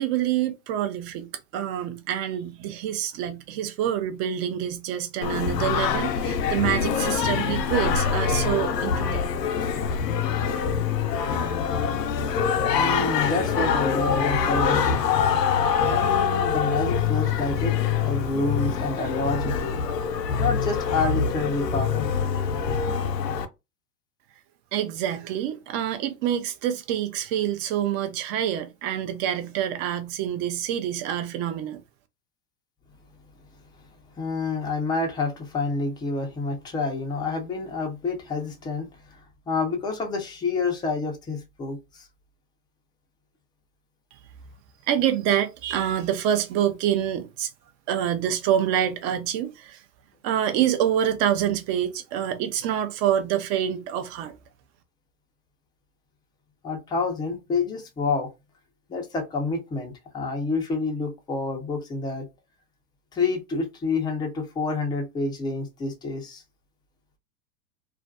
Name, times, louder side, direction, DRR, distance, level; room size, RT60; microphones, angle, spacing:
voice 1, 0.0-9.2 24.7-31.8 44.1-44.2 44.9-47.5 47.9-49.8 50.2-54.3, right 10 dB, 40° right, 0.6 m, -26 dB
Singing, 5.2-23.5, left 6 dB, 80° left, 0.6 m, -24 dB
voice 2, 12.3-15.0 15.9-19.9 20.4-22.1 34.2-39.2 39.5-42.1 56.6-58.3 58.9-62.3 63.1-66.4, left 3 dB, 10° left, 0.4 m, -28 dB
2.4 x 2.2 x 2.4 m
hypercardioid pair, 100°, 49 cm